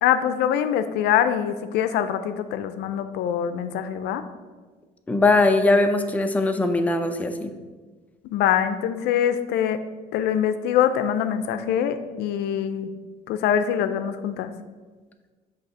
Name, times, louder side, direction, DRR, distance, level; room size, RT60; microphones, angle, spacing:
voice 1, 0.0-4.2 8.3-9.8 10.1-12.9 13.3-14.5, left 9 dB, 80° left, 10 dB, 0.4 m, -24 dB
voice 2, 5.1-7.5, left 2 dB, 10° left, 6 dB, 0.4 m, -20 dB
6.4 x 2.8 x 5.5 m, 1.4 s
cardioid pair, 110°, 17 cm